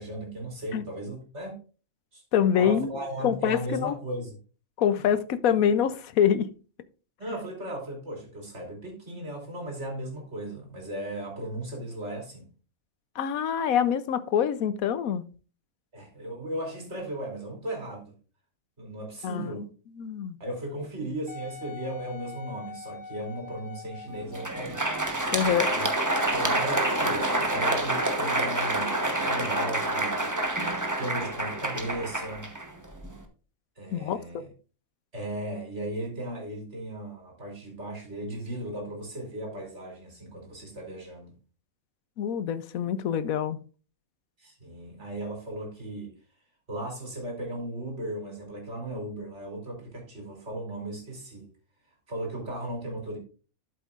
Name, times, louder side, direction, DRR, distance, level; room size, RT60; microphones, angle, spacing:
voice 1, 0.0-1.6 2.1-2.2 2.5-4.4 4.9-5.0 7.2-12.5 15.9-18.1 18.8-19.7 20.4-24.9 25.7-25.9 26.3-30.3 31.0-32.5 33.7-34.5 35.1-41.3 44.4-46.1 46.7-51.5 52.1-53.2, right 1 dB, 50° right, 3.4 m, -36 dB
voice 2, 2.3-2.9 3.2-3.9 4.8-6.5 13.2-15.2 19.2-19.6 20.0-20.4 25.3-25.7 33.9-34.4 42.2-43.6, left 8 dB, 80° left, 1.2 m, -25 dB
Wind instrument woodwind instrument, 21.3-25.6 26.2-26.3, left 5 dB, 40° left, 1.1 m, -44 dB
Crowd, 24.2-33.2, right 1 dB, 15° right, 1.0 m, -27 dB
12.5 x 7.3 x 2.5 m
omnidirectional pair, 1.5 m